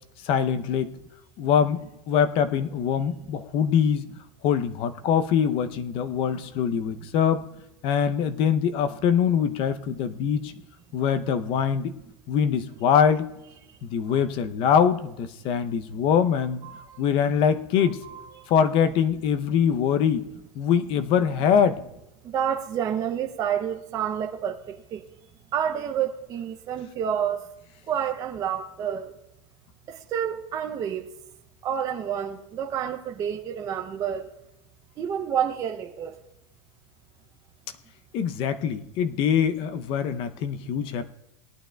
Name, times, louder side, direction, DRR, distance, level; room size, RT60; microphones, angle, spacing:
voice 1, 0.2-0.9 1.4-4.0 4.4-7.4 7.8-10.5 10.9-11.9 12.3-13.3 13.8-16.6 17.0-18.0 18.5-20.3 20.6-21.8 38.1-41.1, left 7 dB, 35° left, 0.6 m, -23 dB
voice 2, 16.6-17.0 17.8-18.5 22.2-25.1 25.5-27.5 27.9-29.1 29.9-31.1 31.6-34.3 35.0-36.2, right 8 dB, 20° right, 0.5 m, -29 dB
18.5 x 11.5 x 2.2 m
supercardioid pair, 165°, 16 cm